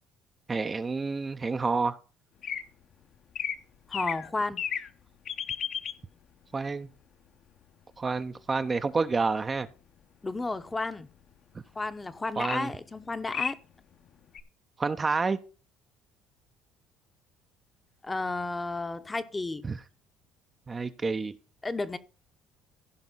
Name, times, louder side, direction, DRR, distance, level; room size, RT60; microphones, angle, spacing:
voice 1, 0.5-2.0 6.5-6.9 8.0-9.7 12.4-12.7 14.8-15.4 19.7-19.8 20.7-21.3, right 4 dB, 25° right, 0.6 m, -29 dB
sound 1, 2.4-2.6 3.3-3.6 3.9-4.3 4.6-4.9 5.3-5.9 12.4-12.6 13.0-13.1 13.3-13.5 14.3-14.4, left 8 dB, 50° left, 0.8 m, -32 dB
voice 2, 3.9-4.6 10.2-11.1 11.8-13.6 18.0-19.6 21.6-22.0, left 3 dB, 15° left, 0.8 m, -32 dB
15.5 x 5.3 x 3.9 m
cardioid pair, 115°, 0 cm